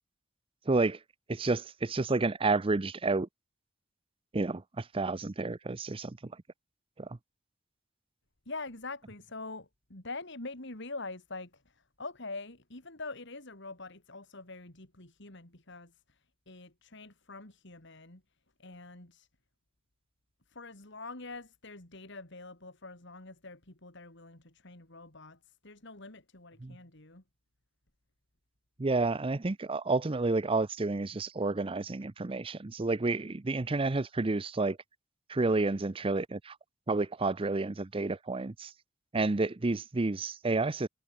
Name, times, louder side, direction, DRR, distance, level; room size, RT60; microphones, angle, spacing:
voice 1, 0.7-1.0 1.3-3.3 4.3-6.3 7.0-7.2 26.6-26.8 28.8-34.8 35.3-36.6 36.9-38.7 39.1-40.9, right 3 dB, 25° right, 0.6 m, -30 dB
voice 2, 8.5-19.3 20.5-27.2, left 3 dB, 60° left, 3.7 m, -45 dB
head